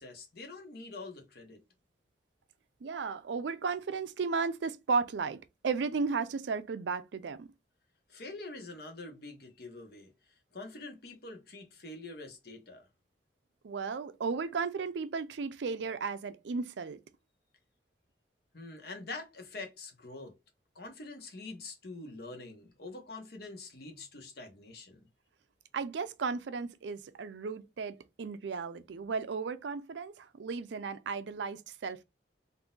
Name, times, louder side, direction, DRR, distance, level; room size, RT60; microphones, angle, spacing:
voice 1, 0.0-1.6 8.1-10.1 10.5-12.9 18.5-20.4 20.7-25.0, left 3 dB, 60° left, 1.0 m, -45 dB
voice 2, 2.8-7.5 13.6-17.0 25.7-32.0, right 5 dB, 75° right, 0.4 m, -34 dB
3.7 x 2.6 x 2.4 m
head